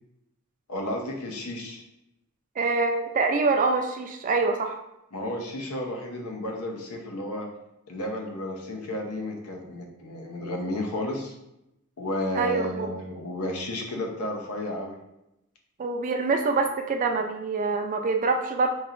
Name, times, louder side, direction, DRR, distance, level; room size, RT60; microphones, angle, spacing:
voice 1, 0.7-1.8 5.1-7.5 7.9-11.3 12.0-15.0, left 1 dB, 90° left, 2 dB, 0.7 m, -32 dB
voice 2, 2.6-4.8 12.4-12.9 15.8-18.7, right 4 dB, 35° right, 4 dB, 0.4 m, -25 dB
4.7 x 2.8 x 2.4 m, 0.87 s
head